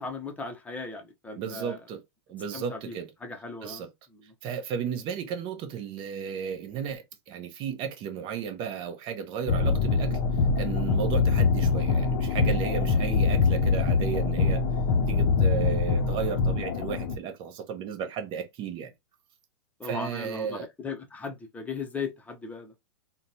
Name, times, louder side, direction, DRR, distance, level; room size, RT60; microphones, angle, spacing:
voice 1, 0.0-1.8 2.5-2.9 3.2-3.8 4.1-4.3 19.8-22.7, left 4 dB, 10° left, 0.8 m, -37 dB
voice 2, 1.4-2.0 2.3-3.1 3.6-3.9 4.4-10.2 10.6-14.6 15.1-18.9 19.8-20.7, right 7 dB, 35° right, 0.8 m, -34 dB
sound 1, 9.5-17.2, left 4 dB, 50° left, 0.6 m, -24 dB
3.8 x 2.3 x 2.7 m
figure-of-eight pair, 105°, 15 cm